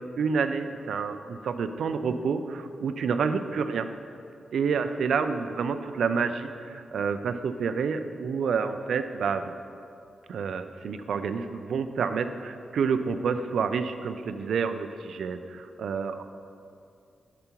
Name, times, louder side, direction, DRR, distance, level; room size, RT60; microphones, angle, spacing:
voice 1, 0.2-3.9 4.5-9.5 10.3-16.2, right 5 dB, 80° right, 9 dB, 0.4 m, -28 dB
8.7 x 6.8 x 3.0 m, 2.4 s
cardioid pair, 55°, 0 cm